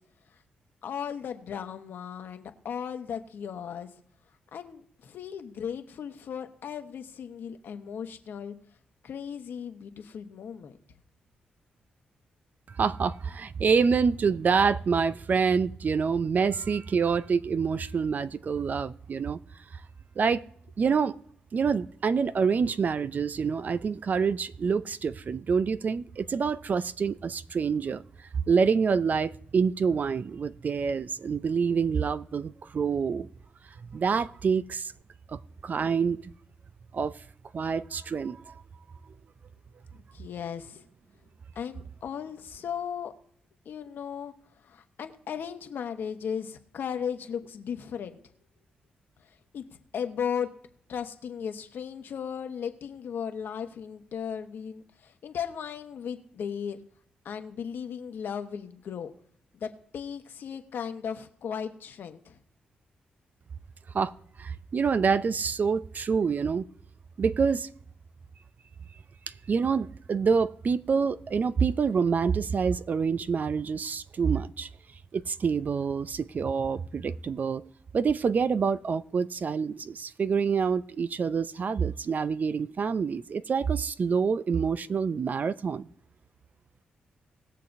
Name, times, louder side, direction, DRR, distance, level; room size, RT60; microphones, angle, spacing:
voice 1, 0.8-3.9 4.5-8.5 9.0-10.8 39.9-40.8 41.5-43.1 43.6-44.3 44.6-48.2 49.2-49.6 49.9-50.5 50.9-56.8 57.2-59.1 59.5-62.4, left 7 dB, 70° left, 1.1 m, -36 dB
voice 2, 12.7-19.4 20.2-20.4 20.8-21.2 21.5-28.0 28.5-33.3 33.9-34.9 35.3-36.3 36.9-37.2 37.5-38.6 63.9-64.1 64.4-66.6 67.2-67.7 69.5-74.7 75.1-77.6 77.9-85.9, right 5 dB, 50° right, 0.5 m, -27 dB
19.5 x 6.6 x 2.6 m
supercardioid pair, 45°, 4 cm